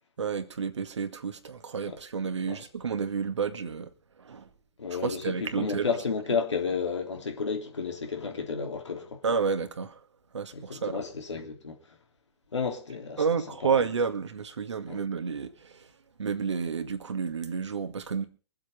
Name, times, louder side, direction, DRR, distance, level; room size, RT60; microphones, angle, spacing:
voice 1, 0.2-3.9 4.2-4.5 4.9-5.9 9.2-10.0 10.3-11.0 13.2-15.8 16.2-18.2, right 6 dB, 75° right, 1.9 m, -30 dB
voice 2, 4.8-9.2 10.5-11.8 12.5-13.2 13.6-13.8 14.9-15.0, left 5 dB, 80° left, 3.4 m, -32 dB
23.0 x 7.8 x 5.6 m
figure-of-eight pair, 115°, 15 cm